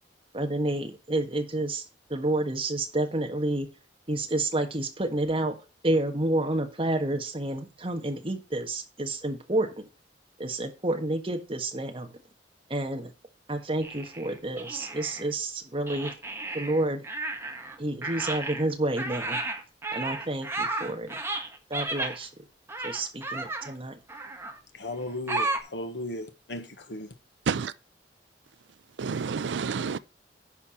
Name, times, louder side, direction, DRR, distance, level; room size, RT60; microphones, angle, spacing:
voice 1, 0.3-1.8 2.1-3.7 4.1-5.6 5.8-9.9 10.4-12.1 12.7-13.1 13.5-16.1 16.5-17.0 17.8-19.4 19.9-21.2 21.7-22.3 22.8-24.0, right 1 dB, 30° right, 1.6 m, -29 dB
sound 1, 13.8-15.3 15.9-17.8 18.0-22.2 22.7-23.7 24.1-24.6 25.3-25.6, right 2 dB, 15° right, 1.4 m, -33 dB
voice 2, 24.8-27.1, left 1 dB, 70° left, 1.3 m, -36 dB
voice 3, 29.0-30.0, right 5 dB, 90° right, 0.5 m, -29 dB
11.0 x 4.7 x 5.8 m
head